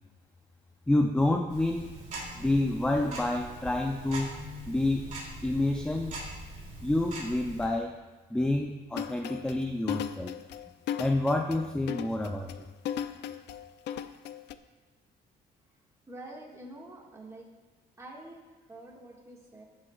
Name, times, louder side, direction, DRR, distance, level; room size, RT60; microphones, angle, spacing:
voice 1, 0.9-2.0 2.4-4.3 4.7-5.1 5.4-6.2 6.8-7.9 8.3-10.3 11.0-12.5, left 2 dB, 5° left, 3 dB, 0.5 m, -28 dB
Tick-tock, 1.5-7.7, right 1 dB, 45° right, 2.7 m, -42 dB
sound 1, 8.9-14.6, left 9 dB, 75° left, 0.5 m, -36 dB
voice 2, 16.1-17.5 18.0-19.6, right 1 dB, 15° right, -2 dB, 1.8 m, -47 dB
15.0 x 7.5 x 2.4 m, 1.4 s
cardioid pair, 130°, 18 cm